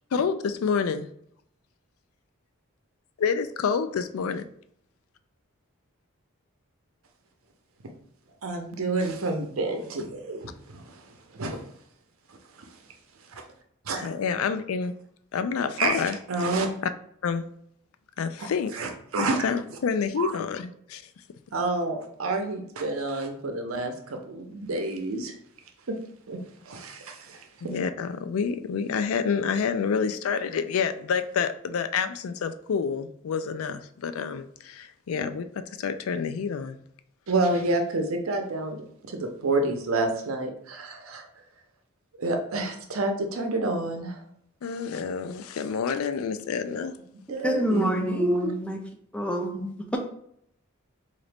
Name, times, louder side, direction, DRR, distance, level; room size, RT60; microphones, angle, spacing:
voice 1, 0.1-1.1 3.2-4.5 14.0-15.0 15.3-16.2 17.2-17.5 18.2-18.8 19.2-21.0 27.6-36.8 44.6-47.0, left 6 dB, 80° left, 10 dB, 0.4 m, -28 dB
voice 2, 8.4-11.0 11.3-11.6 12.6-12.7 13.3-13.4 13.9-14.1 15.8-16.0 16.3-16.7 18.7-19.5 20.2-20.3 21.5-25.3 26.3-26.4 26.7-27.8 37.3-41.3 42.2-44.2 47.3-48.5 49.5-49.7, right 2 dB, 80° right, 4 dB, 0.7 m, -29 dB
voice 3, 47.4-48.8 49.1-49.6, equal, 5° left, 2 dB, 0.5 m, -26 dB
3.8 x 2.6 x 3.3 m, 0.68 s
head